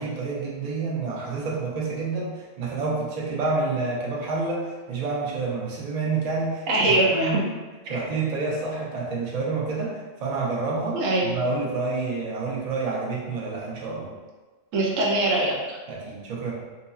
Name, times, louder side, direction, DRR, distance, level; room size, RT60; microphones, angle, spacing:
voice 1, 0.0-7.5 7.9-14.1 15.9-16.5, right 3 dB, 40° right, -3 dB, 0.6 m, -28 dB
voice 2, 6.7-7.4 7.9-8.0 10.9-11.3 14.7-15.8, right 2 dB, 85° right, -2 dB, 1.1 m, -22 dB
3.8 x 2.8 x 2.3 m, 1.3 s
omnidirectional pair, 1.3 m